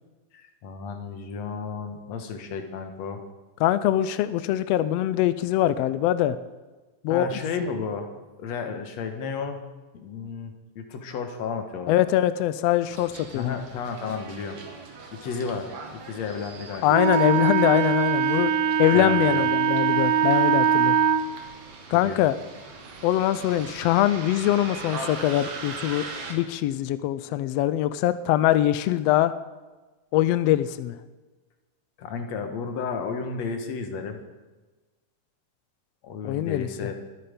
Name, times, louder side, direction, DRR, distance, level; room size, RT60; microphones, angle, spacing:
voice 1, 0.3-3.2 7.1-8.1 8.4-9.7 9.9-12.0 13.3-14.6 15.2-15.7 16.0-17.0 18.9-19.4 22.0-22.2 32.0-34.2 36.0-37.0, left 5 dB, 65° left, 6 dB, 2.4 m, -33 dB
voice 2, 3.6-6.4 7.0-7.3 11.9-13.5 16.8-18.5 18.8-21.0 21.9-22.3 23.0-29.3 30.1-31.0 36.2-36.7, left 13 dB, 85° left, 13 dB, 1.4 m, -23 dB
Bus, 12.9-26.3, right 3 dB, 60° right, 3.1 m, -41 dB
Wind instrument woodwind instrument, 16.9-21.2, right 7 dB, 90° right, 2.5 m, -22 dB
23.0 x 8.8 x 5.2 m, 1.2 s
omnidirectional pair, 3.6 m